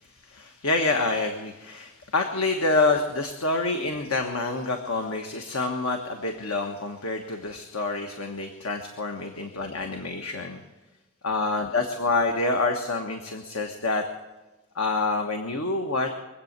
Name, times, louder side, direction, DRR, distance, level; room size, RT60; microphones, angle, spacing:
voice 1, 0.2-10.6 11.2-14.0 14.7-16.1, left 3 dB, 85° left, 4 dB, 1.4 m, -27 dB
23.5 x 8.5 x 6.7 m, 1.1 s
head